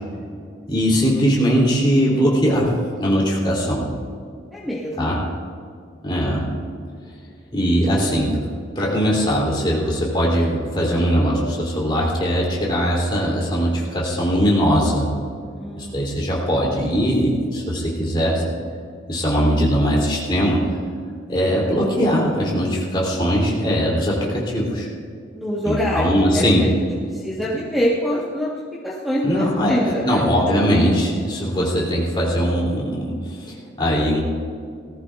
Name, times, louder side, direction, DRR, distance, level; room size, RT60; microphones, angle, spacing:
voice 1, 0.1-0.4 4.5-5.1 15.5-16.1 25.3-26.7 27.1-28.5 28.8-30.2, equal, ahead, -6 dB, 1.5 m, -25 dB
voice 2, 0.7-2.7 3.0-3.9 5.0-5.2 6.0-6.5 7.5-8.5 8.7-15.1 15.8-18.5 19.1-20.6 21.3-24.9 25.6-26.6 29.2-34.2, equal, 25° left, -4 dB, 3.4 m, -20 dB
18.5 x 14.5 x 2.6 m, 2.2 s
head